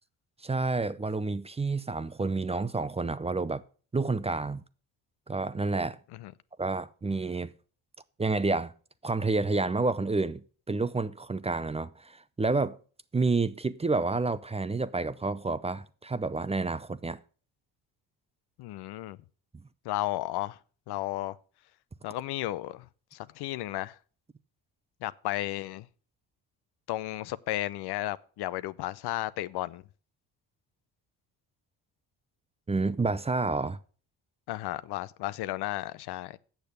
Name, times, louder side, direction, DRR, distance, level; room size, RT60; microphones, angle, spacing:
voice 1, 0.4-3.6 3.9-4.6 5.3-6.0 6.6-7.5 8.2-8.7 9.0-10.4 10.7-12.8 13.1-17.2 32.7-33.8, right 3 dB, 15° right, 0.5 m, -29 dB
voice 2, 18.6-19.2 19.8-20.6 20.9-21.4 22.0-22.9 23.1-24.0 25.0-25.9 26.9-29.8 34.5-36.4, left 15 dB, 75° left, 0.6 m, -33 dB
8.1 x 6.9 x 6.7 m
supercardioid pair, 75°, 39 cm